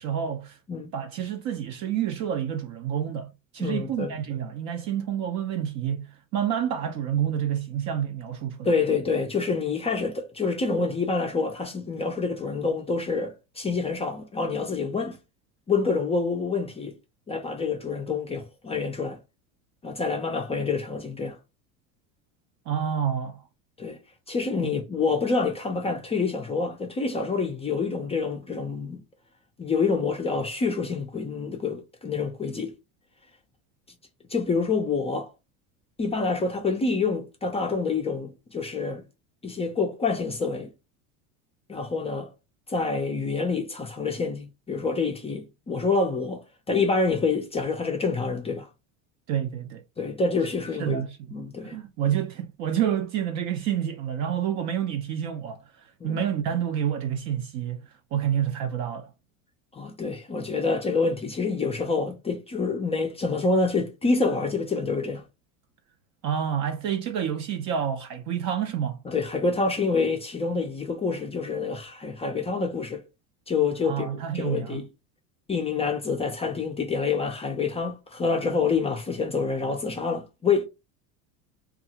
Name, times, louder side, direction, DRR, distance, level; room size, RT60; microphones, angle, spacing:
voice 1, 0.0-0.6 0.9-8.7 22.7-23.4 24.6-24.7 49.3-49.8 50.8-51.2 51.6-57.8 58.1-59.1 66.2-69.0 73.8-74.9, right 9 dB, 45° right, 0.4 m, -28 dB
voice 2, 3.6-4.1 8.6-15.2 15.7-16.9 17.3-19.2 19.8-21.4 23.8-24.0 24.3-29.0 29.6-32.7 34.3-35.3 36.0-39.0 39.4-40.7 41.7-42.3 42.7-46.4 46.7-48.7 50.0-51.0 51.3-51.8 56.0-56.2 59.7-65.2 69.1-73.0 73.5-74.1 74.3-74.8 75.5-80.6, left 4 dB, 15° left, 0.3 m, -27 dB
2.6 x 2.4 x 2.8 m
supercardioid pair, 115°, 42 cm